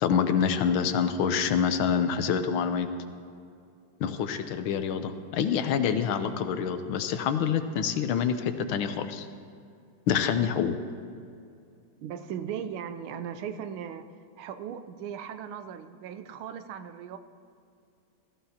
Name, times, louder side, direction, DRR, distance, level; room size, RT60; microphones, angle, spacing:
voice 1, 0.0-2.9 4.0-9.3 10.1-10.7, left 7 dB, 85° left, 9 dB, 1.5 m, -26 dB
voice 2, 12.0-14.1 14.4-17.2, right 8 dB, 85° right, 10 dB, 1.5 m, -38 dB
16.0 x 14.0 x 2.8 m, 2.4 s
omnidirectional pair, 2.2 m